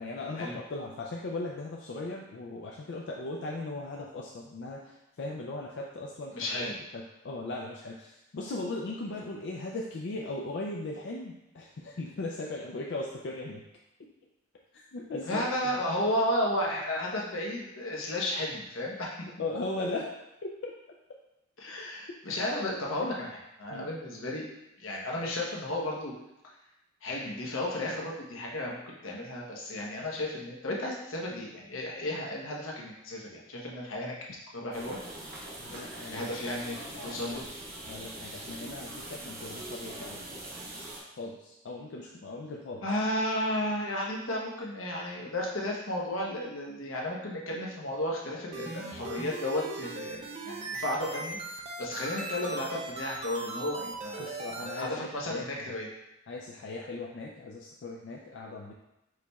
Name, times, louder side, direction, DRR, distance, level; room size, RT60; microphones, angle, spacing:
voice 1, 0.0-13.6 14.9-15.8 19.4-20.1 23.7-23.9 35.6-36.3 36.9-37.1 37.9-40.2 41.2-42.8 54.2-55.6 56.3-58.7, left 2 dB, 60° left, -2 dB, 0.4 m, -38 dB
voice 2, 6.3-6.8 15.2-19.1 21.6-24.4 24.8-26.2 27.0-34.1 34.5-35.0 36.1-37.4 42.8-54.3 54.7-55.9, left 1 dB, 80° left, -2 dB, 1.0 m, -33 dB
sound 1, 34.7-41.0, right 1 dB, 45° right, 0.8 m, -42 dB
sound 2, 48.5-54.8, right 3 dB, 30° right, 0.4 m, -39 dB
4.8 x 4.1 x 2.3 m, 0.91 s
head